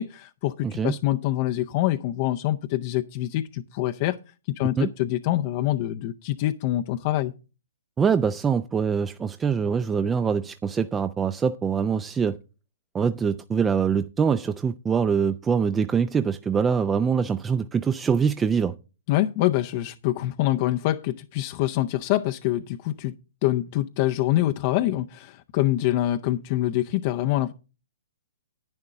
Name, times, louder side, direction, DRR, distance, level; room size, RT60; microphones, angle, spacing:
voice 1, 0.0-7.3 19.1-23.1 23.4-27.5, left 14 dB, 40° left, 0.5 m, -25 dB
voice 2, 0.6-0.9 4.8-4.9 8.0-12.4 12.9-18.8, right 6 dB, 15° right, 0.4 m, -24 dB
10.5 x 9.7 x 3.8 m
hypercardioid pair, 130°, 0 cm